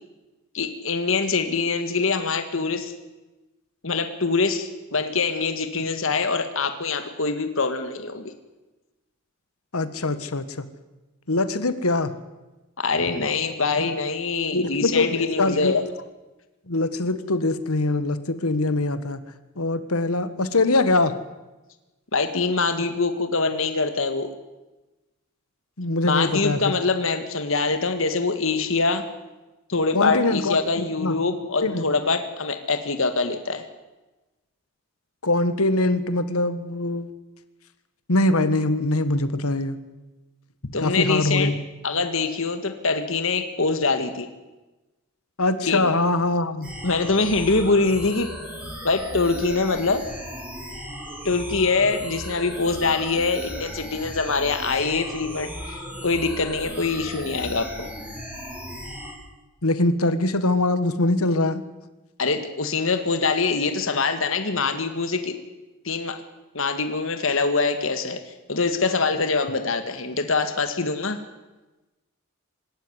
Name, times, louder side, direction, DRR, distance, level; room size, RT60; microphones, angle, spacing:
voice 1, 0.5-2.9 3.8-8.3 12.8-15.8 22.1-24.3 26.0-29.0 29.7-33.6 40.7-41.5 41.8-44.3 45.7-45.9 46.8-48.3 48.8-50.0 51.2-57.9 62.2-65.4 65.8-66.2 66.5-71.2, left 4 dB, 65° left, 8 dB, 1.7 m, -24 dB
voice 2, 9.7-10.4 11.3-12.1 14.5-15.8 16.7-19.2 19.6-21.1 25.8-26.7 29.9-31.2 31.6-31.9 35.2-37.1 38.1-39.8 40.8-41.6 45.4-46.7 59.6-61.6, left 2 dB, 90° left, 13 dB, 1.6 m, -23 dB
sound 1, 46.6-59.1, equal, 5° right, 5.5 m, -36 dB
25.5 x 13.0 x 9.9 m, 1.1 s
head